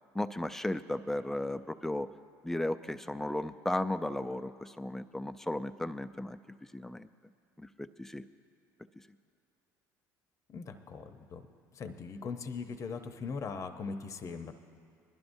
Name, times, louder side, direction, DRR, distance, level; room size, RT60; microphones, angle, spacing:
voice 1, 0.1-2.1 2.4-6.4 6.7-7.1 7.6-8.2, left 1 dB, 5° left, 11 dB, 0.4 m, -35 dB
voice 2, 10.5-11.4 11.7-14.5, left 5 dB, 40° left, 8 dB, 0.8 m, -40 dB
20.5 x 11.5 x 2.6 m, 2.3 s
supercardioid pair, 85°, 8 cm